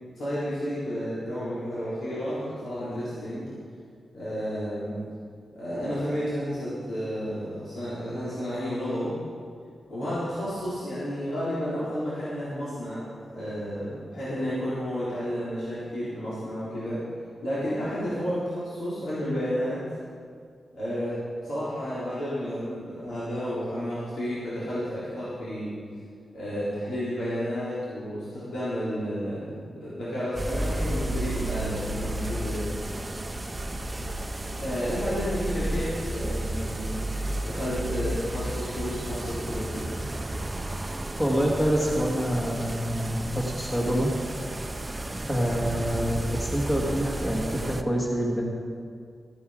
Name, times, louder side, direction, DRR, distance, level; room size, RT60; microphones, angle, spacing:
voice 1, 0.2-3.5 4.1-5.0 5.6-9.1 9.9-17.0 17.4-19.8 20.7-25.7 26.3-32.8 34.6-37.0 37.4-39.9, equal, 85° left, -11 dB, 4.0 m, -31 dB
sound 1, 30.4-47.8, right 1 dB, 15° right, 0.5 m, -32 dB
voice 2, 41.2-44.1 45.3-48.4, equal, 15° left, -2 dB, 1.8 m, -26 dB
14.5 x 10.0 x 5.0 m, 2.2 s
wide cardioid pair, 145°, 0 cm